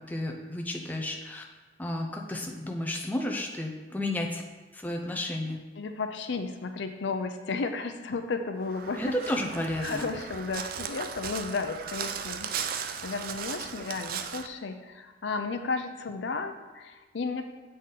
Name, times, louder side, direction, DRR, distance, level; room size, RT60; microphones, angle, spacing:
voice 1, 0.0-1.4 1.8-4.4 4.7-5.6 9.0-10.1, left 1 dB, 10° left, 1 dB, 0.5 m, -32 dB
voice 2, 5.8-9.1 9.8-17.4, left 4 dB, 70° left, 7 dB, 0.5 m, -33 dB
Crow, 8.6-14.5, right 7 dB, 50° right, 0.3 m, -37 dB
7.6 x 3.9 x 4.1 m, 1.2 s
head